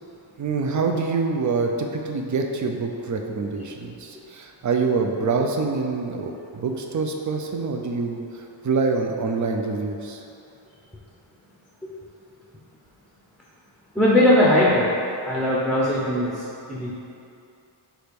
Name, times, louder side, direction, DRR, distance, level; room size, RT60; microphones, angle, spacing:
voice 1, 0.4-10.2, right 4 dB, 40° right, 3 dB, 0.5 m, -26 dB
voice 2, 13.9-14.9 15.2-16.9, left 1 dB, ahead, -6 dB, 0.7 m, -20 dB
4.9 x 4.5 x 5.2 m, 2.7 s
wide cardioid pair, 170°, 47 cm